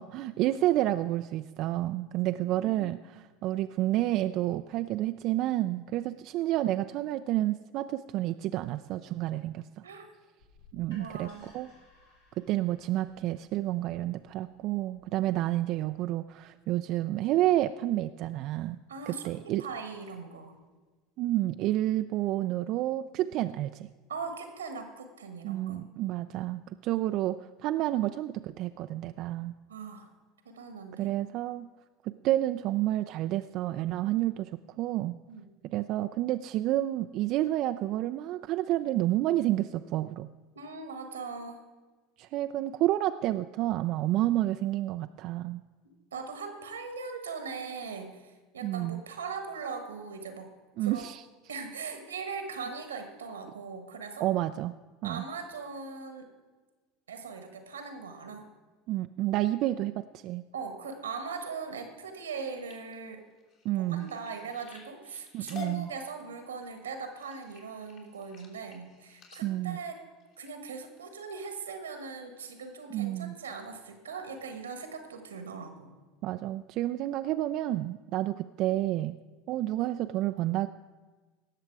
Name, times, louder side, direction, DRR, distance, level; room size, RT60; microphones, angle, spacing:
voice 1, 0.0-9.7 10.7-11.7 12.3-18.8 19.1-19.7 21.2-23.9 25.4-29.6 31.0-31.7 32.0-35.2 35.6-40.3 42.2-45.6 48.6-49.0 50.8-51.2 54.2-54.8 55.0-55.2 58.9-60.4 63.6-64.1 65.3-65.9 69.4-69.8 72.9-73.4 76.2-79.2 79.5-80.7, right 14 dB, 55° right, 9 dB, 0.3 m, -30 dB
sound 1, 10.4-16.2, left 2 dB, 90° left, 3.1 m, -61 dB
voice 2, 10.9-11.5 18.9-20.6 24.1-25.8 26.9-27.0 29.7-30.1 30.4-31.1 35.3-35.4 40.5-41.6 46.1-50.5 50.8-51.1 51.5-54.3 55.0-56.3 57.1-58.5 60.5-63.2 63.7-70.0 70.4-75.9, right 5 dB, 90° right, 7 dB, 1.4 m, -40 dB
sound 2, 62.3-71.0 71.6-71.9 72.3-72.7 73.2-73.3 73.6-73.7, left 5 dB, 50° left, 3.1 m, -50 dB
18.0 x 6.7 x 4.7 m, 1.3 s
hypercardioid pair, 80°, 0 cm